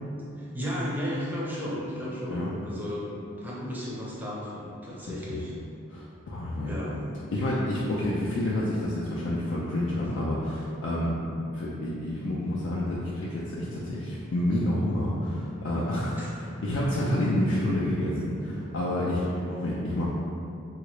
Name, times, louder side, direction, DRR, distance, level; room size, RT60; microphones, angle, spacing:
voice 1, 0.4-3.1 3.4-5.5 6.6-7.1 10.0-10.2 16.2-16.6, equal, 10° right, -6 dB, 0.5 m, -34 dB
voice 2, 5.1-5.4 5.9-6.7 7.3-11.1 11.5-20.1, left 1 dB, 65° left, -6 dB, 0.4 m, -29 dB
3.6 x 2.4 x 3.0 m, 2.7 s
head